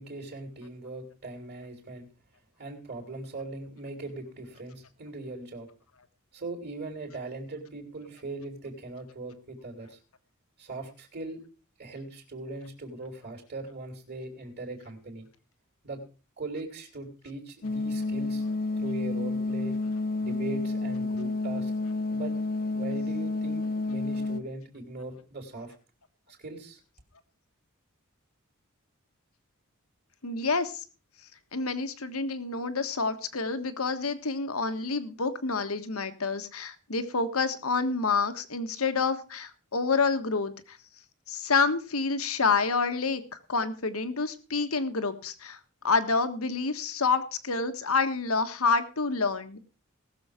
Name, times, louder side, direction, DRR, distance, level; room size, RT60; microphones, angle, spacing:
voice 1, 0.0-2.1 2.6-5.7 6.3-10.0 10.6-11.4 11.8-15.3 15.8-16.0 16.4-19.8 20.2-21.7 22.1-22.3 22.7-25.7 26.3-26.8, right 2 dB, 50° right, 1 dB, 3.6 m, -40 dB
sound 1, 17.6-24.4, left 2 dB, 45° left, 0.9 m, -30 dB
voice 2, 30.2-30.8 31.5-40.8 41.3-45.6 45.8-49.6, left 4 dB, 90° left, 10 dB, 1.5 m, -28 dB
19.5 x 7.1 x 5.0 m, 0.35 s
head